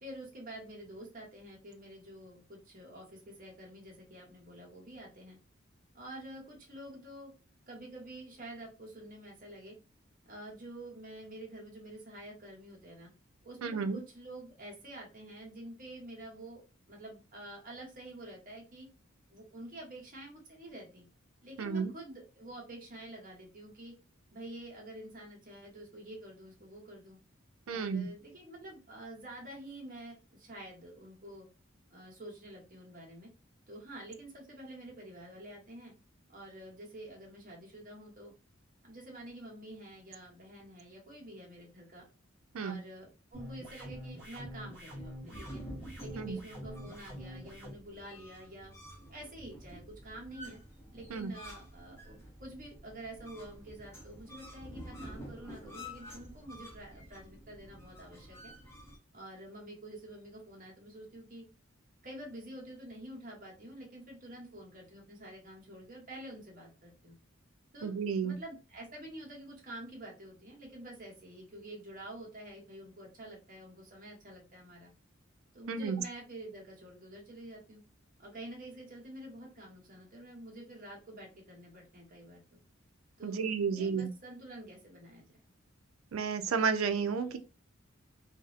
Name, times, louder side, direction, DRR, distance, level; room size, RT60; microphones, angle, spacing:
voice 1, 0.0-5.4 5.9-7.3 7.7-9.7 10.2-13.1 13.4-16.6 16.9-18.9 19.3-21.0 21.4-23.9 24.3-27.2 27.7-31.5 31.9-33.3 33.7-35.9 36.3-38.3 38.8-42.0 42.6-45.6 46.0-48.7 49.1-50.6 50.9-58.5 59.1-61.4 62.0-67.2 67.7-67.9 68.2-74.9 75.5-77.8 78.2-82.6 83.2-85.3, right 1 dB, 45° right, 1.1 m, -48 dB
voice 2, 13.6-14.0 21.6-21.9 27.7-28.1 42.5-42.8 46.2-46.4 51.1-51.3 67.8-68.4 75.7-76.0 83.2-84.1 86.1-87.4, right 5 dB, 80° right, 0.4 m, -32 dB
sound 1, 43.3-47.7, equal, 5° right, 1.2 m, -45 dB
sound 2, 45.3-59.0, equal, 15° left, 0.7 m, -50 dB
2.6 x 2.0 x 2.4 m
head